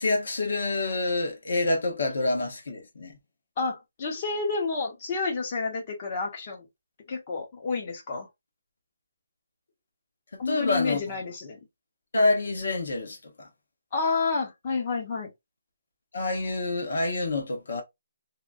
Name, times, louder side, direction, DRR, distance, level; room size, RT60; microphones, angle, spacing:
voice 1, 0.0-3.2 10.5-11.0 12.1-13.3 16.1-17.8, left 2 dB, 55° left, 1.0 m, -27 dB
voice 2, 3.6-6.7 7.1-8.3 10.4-11.6 13.9-15.3, left 4 dB, 25° left, 0.6 m, -29 dB
2.8 x 2.6 x 2.3 m
hypercardioid pair, 180°, 0 cm